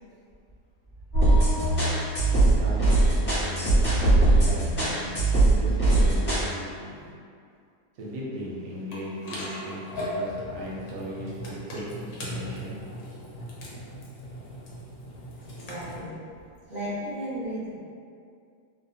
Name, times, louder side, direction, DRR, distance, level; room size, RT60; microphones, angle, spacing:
sound 1, 1.1-6.5, right 2 dB, 40° left, 1.0 m, -21 dB
voice 1, 2.3-7.1 8.0-11.4 11.7-12.8, equal, 70° right, -5 dB, 0.8 m, -38 dB
sound 2, 8.9-16.0, equal, 70° left, 1.0 m, -38 dB
voice 2, 15.5-16.3 16.7-17.8, equal, 20° left, -14 dB, 0.5 m, -34 dB
2.8 x 2.1 x 2.6 m, 2.3 s
omnidirectional pair, 1.8 m